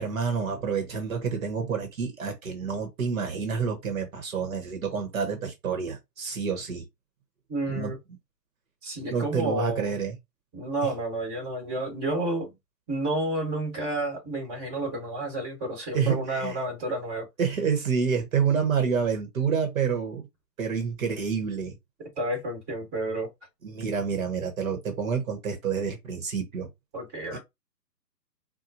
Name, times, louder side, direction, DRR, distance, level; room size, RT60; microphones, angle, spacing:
voice 1, 0.0-6.9 7.7-7.9 9.1-10.2 15.9-16.6 17.4-20.2 20.6-21.7 23.6-26.7 27.3-27.4, right 6 dB, 55° right, 1.1 m, -28 dB
voice 2, 7.5-8.0 8.8-10.0 10.5-12.5 12.9-17.2 22.2-23.3 26.9-27.4, right 1 dB, 15° right, 1.4 m, -30 dB
4.2 x 2.3 x 2.6 m
hypercardioid pair, 155°, 49 cm